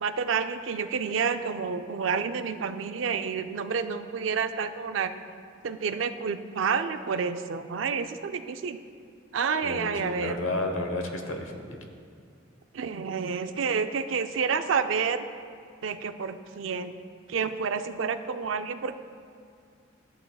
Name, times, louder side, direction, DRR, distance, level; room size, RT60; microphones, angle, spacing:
voice 1, 0.0-5.1 5.6-8.8 9.3-10.4 12.7-15.2 15.8-16.9 17.3-19.0, right 6 dB, 70° right, 9 dB, 0.4 m, -29 dB
voice 2, 9.6-11.8, left 2 dB, 90° left, 3 dB, 1.1 m, -32 dB
14.0 x 7.8 x 2.3 m, 2.3 s
head